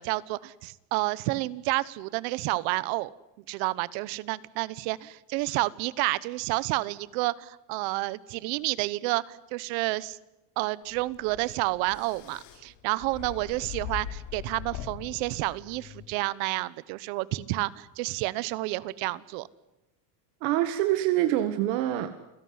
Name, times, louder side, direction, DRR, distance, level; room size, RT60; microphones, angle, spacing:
voice 1, 0.0-3.1 3.5-10.2 10.6-19.5, right 20 dB, 70° right, 20 dB, 1.2 m, -30 dB
sound 1, 10.9-16.1, left 10 dB, 55° left, 3.9 m, -41 dB
voice 2, 20.4-22.1, right 13 dB, 85° right, 9 dB, 1.8 m, -25 dB
29.5 x 17.0 x 9.6 m, 0.96 s
cardioid pair, 165°, 49 cm